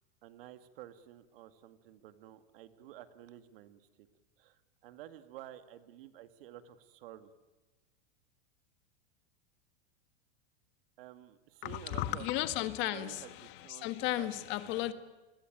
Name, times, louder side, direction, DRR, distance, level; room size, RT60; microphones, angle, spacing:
voice 1, 0.2-4.1 4.4-7.3 11.0-12.3 12.9-14.7, right 12 dB, 60° right, 10 dB, 2.2 m, -51 dB
voice 2, 11.6-14.9, left 15 dB, 35° left, 11 dB, 1.7 m, -35 dB
28.5 x 22.0 x 9.2 m, 1.2 s
supercardioid pair, 160°, 32 cm